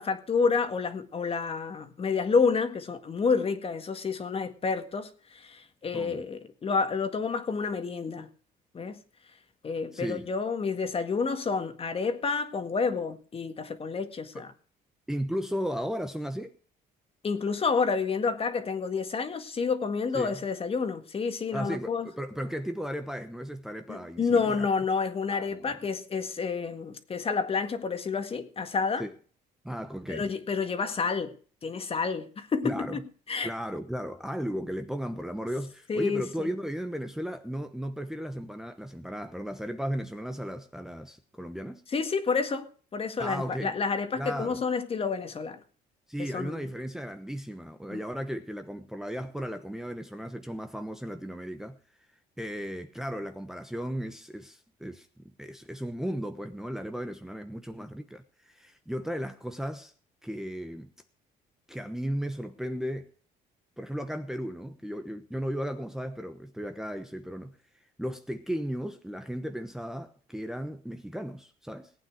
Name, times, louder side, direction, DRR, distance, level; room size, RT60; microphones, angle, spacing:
voice 1, 0.0-8.3 8.7-9.0 9.6-14.5 17.2-22.1 23.9-29.1 30.1-31.3 31.6-33.0 33.3-33.5 35.9-36.5 41.9-45.6 46.2-46.6 47.9-48.0, left 5 dB, 35° left, 1.8 m, -29 dB
voice 2, 9.9-10.3 14.3-14.4 15.1-16.6 20.1-20.3 21.5-24.7 25.3-25.6 29.0-29.1 29.6-30.3 32.6-33.0 33.4-41.8 43.2-43.8 44.2-44.6 46.1-51.8 52.4-55.1 55.4-59.9 60.2-60.9 61.7-63.1 63.8-67.5 68.0-71.9, equal, 5° right, 1.0 m, -35 dB
18.5 x 9.0 x 4.8 m
cardioid pair, 110°, 17 cm